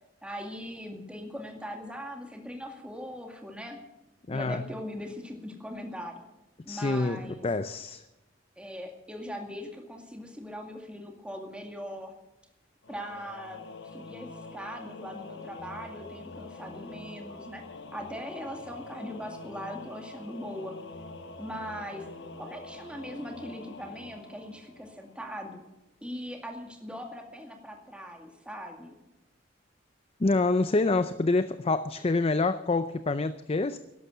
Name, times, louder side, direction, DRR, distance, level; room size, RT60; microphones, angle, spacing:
voice 1, 0.2-3.8 4.3-6.2 6.7-7.5 8.6-12.1 12.9-13.6 13.9-17.6 17.9-20.7 21.4-22.1 22.4-25.6 26.0-29.0, equal, 5° right, 2 dB, 2.2 m, -40 dB
voice 2, 4.3-4.6 6.7-8.0 30.2-33.8, left 3 dB, 30° left, 12 dB, 0.5 m, -27 dB
Singing / Musical instrument, 12.8-25.3, left 3 dB, 65° left, 1.3 m, -45 dB
12.5 x 11.5 x 7.8 m, 0.94 s
head